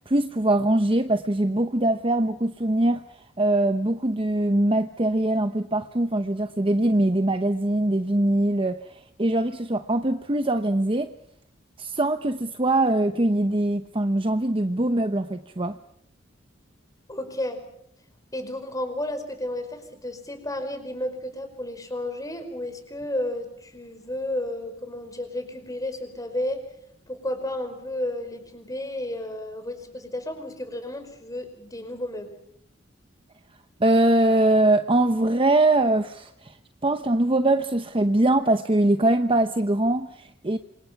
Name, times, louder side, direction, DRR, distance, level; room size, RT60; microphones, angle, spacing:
voice 1, 0.1-3.0 3.4-11.1 11.8-15.8 33.8-36.6 36.8-40.6, right 1 dB, 30° right, 0.9 m, -22 dB
voice 2, 17.1-17.6 18.3-26.6 27.1-32.4, left 1 dB, 20° left, 5.0 m, -32 dB
27.5 x 26.5 x 6.0 m
head